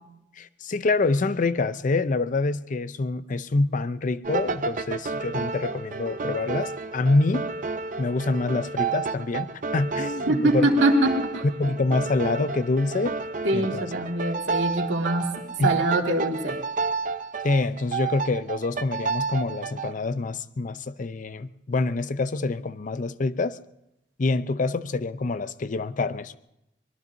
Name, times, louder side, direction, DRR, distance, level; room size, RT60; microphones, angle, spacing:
voice 1, 0.4-7.4 8.0-10.7 11.6-13.1 13.5-13.9 15.6-15.7 17.4-23.6 24.2-26.4, left 3 dB, 45° left, 0.5 m, -26 dB
sound 1, 4.2-19.9, right 5 dB, 45° right, 0.6 m, -31 dB
voice 2, 10.3-11.4 13.4-15.3 15.6-16.6, right 1 dB, 85° right, 2.0 m, -23 dB
24.0 x 20.5 x 2.7 m
head